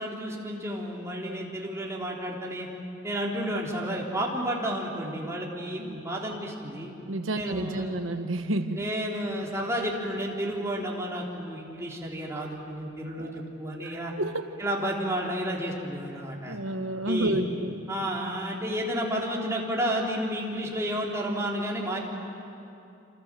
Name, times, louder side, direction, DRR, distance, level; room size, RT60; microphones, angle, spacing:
voice 1, 0.0-2.7 3.0-6.9 7.3-8.0 8.8-14.1 14.6-16.6 17.0-17.4 17.9-22.0, equal, 15° right, -3 dB, 3.6 m, -31 dB
voice 2, 7.1-8.9 13.2-13.3 14.2-14.5 16.5-17.9, right 1 dB, 85° right, 7 dB, 1.2 m, -30 dB
28.0 x 26.5 x 7.6 m, 2.8 s
head